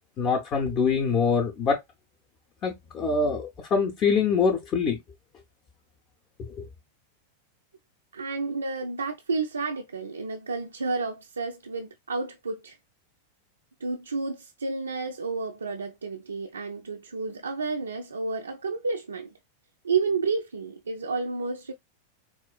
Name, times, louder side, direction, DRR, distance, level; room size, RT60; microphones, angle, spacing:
voice 1, 0.2-1.8 2.6-5.0 6.5-6.7, left 5 dB, 30° left, 0.6 m, -24 dB
voice 2, 8.1-12.8 13.8-19.3 19.8-21.7, right 4 dB, 75° right, 0.3 m, -31 dB
4.3 x 2.3 x 2.3 m
figure-of-eight pair, 90°, 0 cm